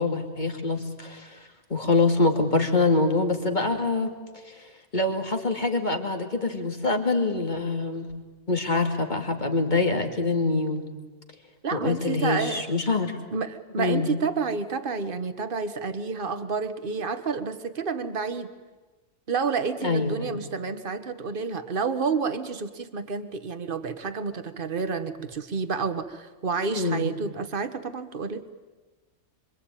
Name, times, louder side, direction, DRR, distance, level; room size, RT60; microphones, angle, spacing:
voice 1, 0.0-1.4 1.7-4.2 4.4-8.1 8.5-10.8 11.7-13.2 13.8-14.1 19.8-20.4 26.8-27.1, left 3 dB, 35° left, 5 dB, 2.6 m, -25 dB
voice 2, 11.6-12.6 13.3-18.5 19.3-28.4, right 5 dB, 40° right, 10 dB, 1.5 m, -29 dB
26.5 x 24.0 x 9.1 m, 1.2 s
omnidirectional pair, 1.4 m